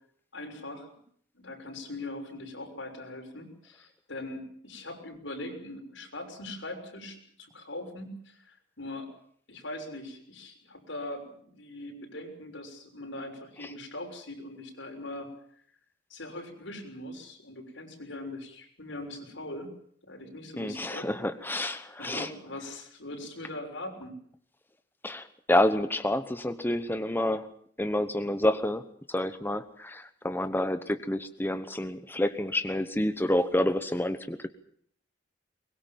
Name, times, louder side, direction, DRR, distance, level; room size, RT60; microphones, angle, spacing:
voice 1, 0.3-0.9 1.3-9.1 9.5-15.3 16.1-19.7 20.0-21.1 21.8-24.2, left 1 dB, 80° left, 3 dB, 6.5 m, -41 dB
voice 2, 20.6-22.3 25.0-27.5 27.8-34.5, left 1 dB, 10° left, 10 dB, 1.0 m, -28 dB
23.0 x 21.5 x 7.5 m, 0.62 s
head